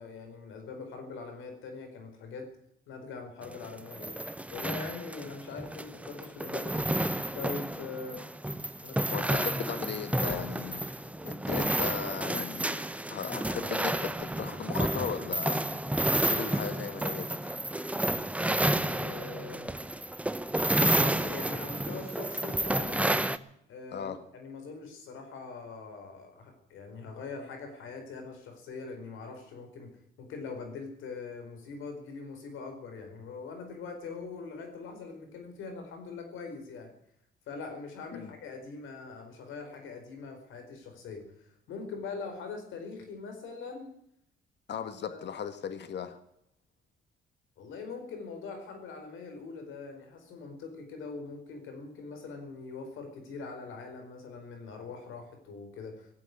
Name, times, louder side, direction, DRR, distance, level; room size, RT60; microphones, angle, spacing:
voice 1, 0.0-2.5 2.9-4.2 4.5-6.8 7.3-8.2 8.8-9.5 18.8-19.7 20.7-23.0 23.7-29.9 30.2-36.9 37.5-43.9 45.0-45.2 47.6-56.1, left 4 dB, 85° left, 5 dB, 4.6 m, -42 dB
sound 1, 3.4-23.4, right 1 dB, 5° right, 0.8 m, -31 dB
voice 2, 9.1-10.8 11.2-12.8 13.1-15.6 16.1-17.6 23.9-24.2 38.1-38.3 44.7-46.2, left 7 dB, 60° left, 10 dB, 1.6 m, -37 dB
18.0 x 8.2 x 9.6 m, 0.74 s
cardioid pair, 90°, 20 cm